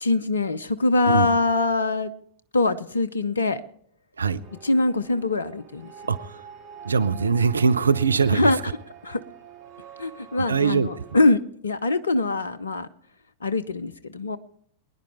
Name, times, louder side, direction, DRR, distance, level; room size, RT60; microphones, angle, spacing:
voice 1, 0.0-2.1 2.5-3.6 4.6-5.9 8.3-8.6 9.0-9.2 10.0-12.9 13.4-14.4, left 2 dB, 75° left, 16 dB, 0.6 m, -23 dB
sound 1, 4.4-11.2, right 8 dB, 40° right, 3.2 m, -45 dB
voice 2, 6.1-6.5 6.8-8.7 10.5-10.9, right 5 dB, 75° right, 13 dB, 0.6 m, -22 dB
24.0 x 10.5 x 3.4 m, 0.63 s
figure-of-eight pair, 90°, 0 cm